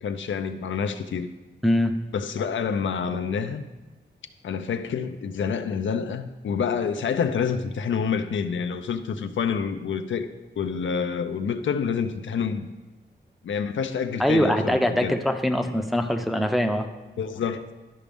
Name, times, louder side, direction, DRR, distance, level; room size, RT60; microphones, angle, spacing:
voice 1, 0.0-1.3 2.1-3.6 4.4-10.3 10.6-12.7 13.4-15.2 17.2-17.6, left 6 dB, 90° left, 8 dB, 0.5 m, -27 dB
voice 2, 1.6-2.0 14.2-16.9, equal, ahead, 5 dB, 0.5 m, -23 dB
12.0 x 5.0 x 3.5 m, 1.1 s
wide cardioid pair, 105°, 19 cm